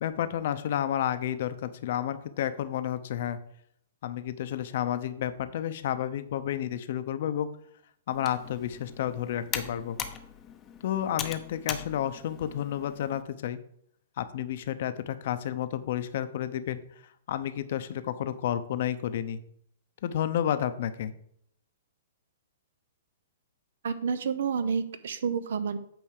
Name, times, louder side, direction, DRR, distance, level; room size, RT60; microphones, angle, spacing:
voice 1, 0.0-3.4 4.0-7.5 8.1-10.0 10.8-13.6 14.2-16.8 17.3-19.4 20.0-21.1, left 10 dB, 55° left, 11 dB, 0.8 m, -31 dB
Computer keyboard, 8.1-13.2, left 8 dB, 20° left, 0.7 m, -40 dB
voice 2, 23.8-25.8, right 6 dB, 70° right, 11 dB, 0.9 m, -29 dB
9.0 x 3.5 x 6.5 m, 0.69 s
hypercardioid pair, 150°, 0 cm